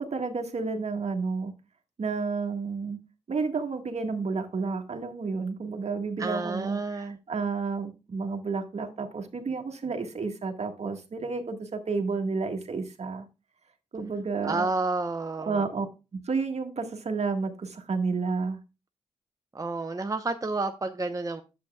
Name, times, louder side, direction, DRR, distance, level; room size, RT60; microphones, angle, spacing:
voice 1, 0.0-1.5 2.0-3.0 3.3-13.2 13.9-14.7 15.4-15.8 16.1-18.6, right 4 dB, 60° right, 5 dB, 1.7 m, -31 dB
voice 2, 6.2-7.2 14.4-15.7 19.5-21.4, right 3 dB, 25° right, 6 dB, 0.9 m, -30 dB
10.0 x 7.9 x 2.3 m, 0.28 s
cardioid pair, 55°, 13 cm